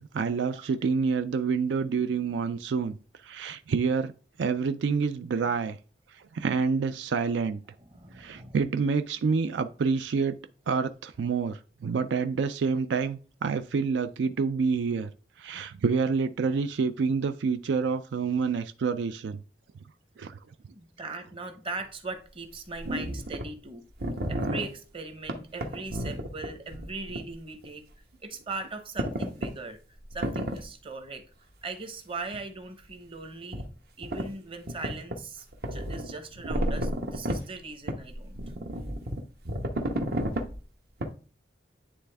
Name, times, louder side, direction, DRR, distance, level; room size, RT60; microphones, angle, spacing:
voice 1, 0.0-3.0 3.2-4.1 4.4-5.8 6.1-7.6 8.1-10.4 10.7-15.1 15.4-19.4 20.2-20.4, right 5 dB, 80° right, 0.4 m, -28 dB
voice 2, 7.8-8.6 20.7-23.8 24.3-27.8 28.2-29.8 30.1-31.2 31.6-33.7 34.0-38.4, right 3 dB, 30° right, 0.9 m, -39 dB
sound 1, 21.8-21.9 22.7-23.5 23.9-24.7 25.3-27.3 27.6-27.7 29.0-29.5 30.1-30.7 32.3-32.4 33.5-33.7 34.0-34.3 34.7-35.2 35.5-37.4 37.9-40.5 41.0-41.1, right 1 dB, 60° right, 0.9 m, -31 dB
9.7 x 3.4 x 3.4 m
head